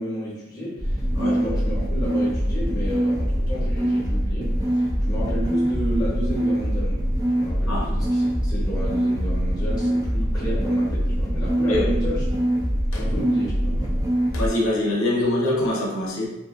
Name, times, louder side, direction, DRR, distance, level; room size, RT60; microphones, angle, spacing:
voice 1, 0.0-12.3 12.9-13.9, equal, 20° left, -6 dB, 0.8 m, -31 dB
sound 1, 0.8-14.5, equal, 15° right, 0.4 m, -23 dB
voice 2, 14.3-16.4, left 1 dB, 85° left, -3 dB, 0.6 m, -23 dB
2.6 x 2.4 x 2.4 m, 0.99 s
head